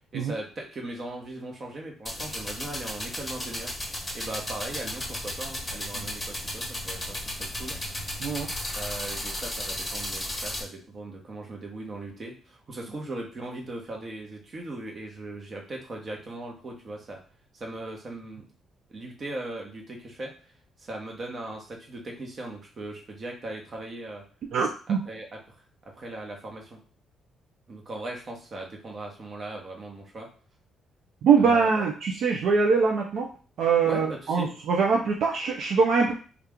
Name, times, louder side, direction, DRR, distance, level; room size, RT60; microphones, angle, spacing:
voice 1, 0.1-3.9 4.1-7.8 8.7-17.2 17.5-18.4 18.9-20.3 20.8-24.2 25.1-25.3 25.9-26.8 27.7-30.3 31.4-31.8 33.8-34.5, right 2 dB, 45° right, 0 dB, 1.0 m, -38 dB
sound 1, 2.1-10.6, left 1 dB, 10° left, 1.0 m, -34 dB
voice 2, 8.2-8.5 24.5-25.0 31.2-33.3 33.6-36.1, right 5 dB, 70° right, 0 dB, 0.5 m, -23 dB
2.9 x 2.4 x 3.5 m, 0.39 s
cardioid pair, 90°, 0 cm